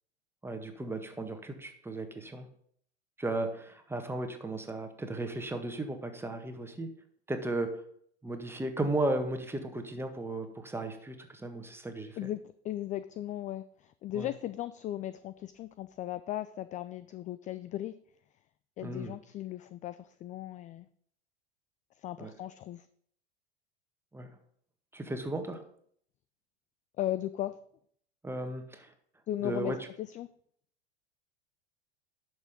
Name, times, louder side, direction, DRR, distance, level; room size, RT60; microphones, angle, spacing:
voice 1, 0.4-2.5 3.2-6.9 7.3-7.8 8.2-12.3 14.1-14.3 18.8-19.1 22.2-22.3 24.1-24.3 24.9-25.6 28.2-28.9 29.4-29.8, right 2 dB, 5° right, 6 dB, 1.6 m, -35 dB
voice 2, 12.2-17.9 18.8-20.9 22.0-22.9 27.0-27.6 29.3-29.7 30.0-30.3, left 13 dB, 25° left, 14 dB, 0.3 m, -37 dB
11.0 x 6.3 x 5.1 m, 0.64 s
figure-of-eight pair, 85°, 33 cm